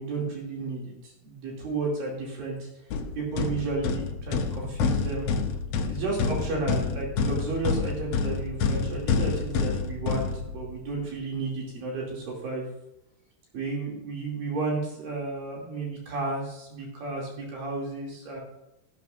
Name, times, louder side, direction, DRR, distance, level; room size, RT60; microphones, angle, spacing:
voice 1, 0.0-2.7 3.2-5.3 5.9-12.7 13.5-18.4, right 3 dB, 80° right, -3 dB, 4.4 m, -32 dB
sound 1, 2.9-10.9, left 5 dB, 90° left, 1.3 m, -28 dB
14.5 x 12.0 x 2.6 m, 0.89 s
omnidirectional pair, 4.0 m